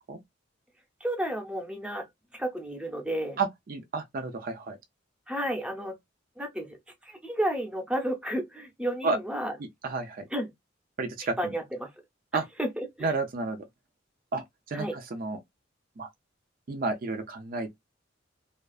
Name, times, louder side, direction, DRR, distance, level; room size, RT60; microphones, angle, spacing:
voice 1, 1.0-2.1 2.3-3.4 5.3-6.0 6.4-6.8 7.0-9.5 10.3-10.5 11.4-11.9 12.6-13.1 14.7-15.0, right 1 dB, 5° right, 0.7 m, -32 dB
voice 2, 3.4-4.8 9.0-9.2 9.8-10.3 11.0-11.5 12.3-12.4 13.0-13.7 14.3-15.4 16.0-16.1 16.7-17.8, right 3 dB, 50° right, 0.4 m, -31 dB
2.4 x 2.3 x 2.3 m
head